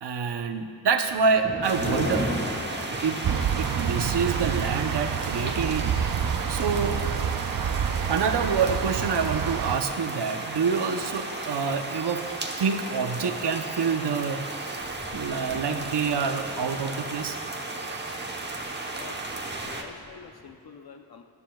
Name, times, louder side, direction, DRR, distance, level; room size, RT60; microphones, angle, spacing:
voice 1, 0.0-2.3 3.0-3.2 3.6-5.9 6.5-7.0 8.1-12.2 12.6-14.4 15.1-17.4, right 5 dB, 85° right, 7 dB, 0.8 m, -27 dB
Thunder, 1.1-9.6 10.1-10.4 11.1-11.2 11.5-11.6 13.8-14.0 14.3-14.4 14.6-20.6, left 1 dB, 30° left, 1.7 m, -39 dB
sound 1, 1.6-19.8, right 2 dB, 25° right, 1.0 m, -35 dB
sound 2, 3.2-9.8, right 8 dB, 60° right, 0.5 m, -28 dB
voice 2, 18.9-19.2 19.6-21.2, left 5 dB, 65° left, 4 dB, 0.7 m, -46 dB
19.0 x 12.5 x 2.4 m, 2.2 s
wide cardioid pair, 105°, 40 cm